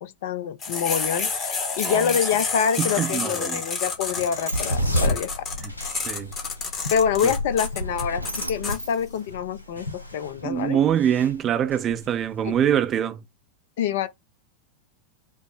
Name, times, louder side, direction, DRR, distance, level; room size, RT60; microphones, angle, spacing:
voice 1, 0.0-5.4 6.9-10.8 12.4-12.5 13.8-14.1, left 8 dB, 55° left, 0.5 m, -26 dB
sound 1, 0.6-8.8, left 4 dB, 30° left, 1.0 m, -29 dB
voice 2, 2.8-3.6 6.1-6.3 10.4-13.2, right 9 dB, 30° right, 0.5 m, -24 dB
Sliding door, 3.7-9.9, right 1 dB, 90° right, 0.6 m, -41 dB
sound 2, 4.0-12.8, equal, 85° left, 0.8 m, -31 dB
5.3 x 2.0 x 3.4 m
figure-of-eight pair, 90°, 0 cm